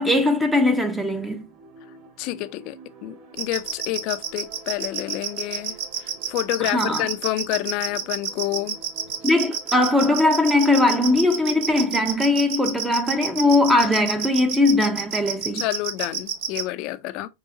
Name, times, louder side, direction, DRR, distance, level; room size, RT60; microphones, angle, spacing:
voice 1, 0.0-1.4 6.6-7.1 9.2-15.6, left 2 dB, 5° right, 0.7 m, -20 dB
sound 1, 1.0-12.1, right 5 dB, 35° right, 2.2 m, -47 dB
voice 2, 2.2-8.8 15.5-17.3, left 16 dB, 45° left, 0.5 m, -29 dB
sound 2, 3.4-16.6, right 8 dB, 60° right, 0.9 m, -28 dB
4.7 x 3.7 x 2.8 m
hypercardioid pair, 125°, 0 cm